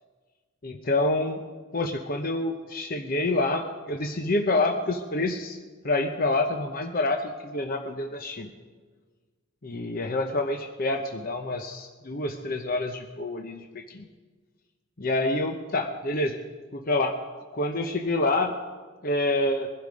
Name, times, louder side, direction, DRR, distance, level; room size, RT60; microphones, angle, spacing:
voice 1, 0.6-1.4 1.7-5.6 5.8-8.5 9.6-14.0 15.0-16.4 16.7-17.2 17.5-18.5 19.0-19.7, left 2 dB, 45° left, 4 dB, 0.8 m, -27 dB
21.5 x 12.0 x 5.2 m, 1.5 s
head